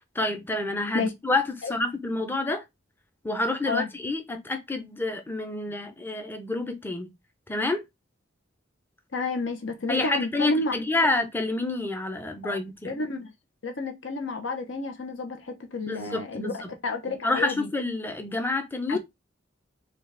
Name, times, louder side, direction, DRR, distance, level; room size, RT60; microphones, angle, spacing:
voice 1, 0.1-2.6 3.2-7.1 7.5-7.8 9.9-13.0 15.8-16.7 17.2-19.0, left 2 dB, 10° left, 0.6 m, -28 dB
voice 2, 9.1-10.7 12.4-12.6 12.8-13.3 13.6-16.5 16.8-17.7 18.9-19.0, left 3 dB, 75° left, 0.9 m, -30 dB
4.0 x 2.4 x 3.2 m
head